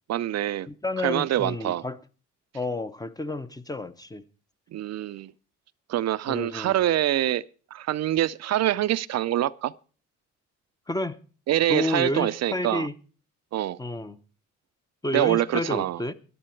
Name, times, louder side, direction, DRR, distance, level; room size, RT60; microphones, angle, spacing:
voice 1, 0.1-0.7 1.0-1.8 4.7-5.3 5.9-7.4 7.7-9.7 11.5-12.9 13.5-13.8 15.1-16.0, right 13 dB, 60° right, 0.5 m, -25 dB
voice 2, 0.7-2.0 2.5-4.2 6.3-6.7 10.9-11.2 11.7-12.9 13.8-14.2 15.0-16.1, left 1 dB, 10° left, 0.8 m, -30 dB
12.0 x 11.0 x 4.5 m
cardioid pair, 90°, 30 cm